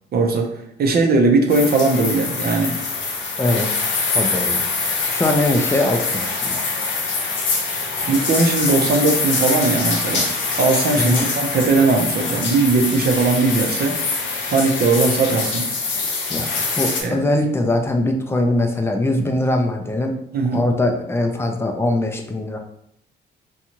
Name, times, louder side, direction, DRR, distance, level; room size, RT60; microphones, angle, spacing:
voice 1, 0.1-0.5 0.8-2.8 8.1-10.3 10.6-14.0 14.5-15.7 17.0-17.2 20.3-20.6, right 3 dB, 50° right, 3 dB, 0.6 m, -19 dB
sound 1, 1.5-17.0, left 4 dB, 75° left, 0.7 m, -24 dB
voice 2, 3.4-3.7 4.1-4.6 5.1-6.6 11.0-11.3 16.3-16.5 16.8-20.1 20.5-22.6, left 1 dB, 10° left, 3 dB, 0.4 m, -21 dB
2.6 x 2.3 x 2.9 m, 0.73 s
cardioid pair, 90°, 20 cm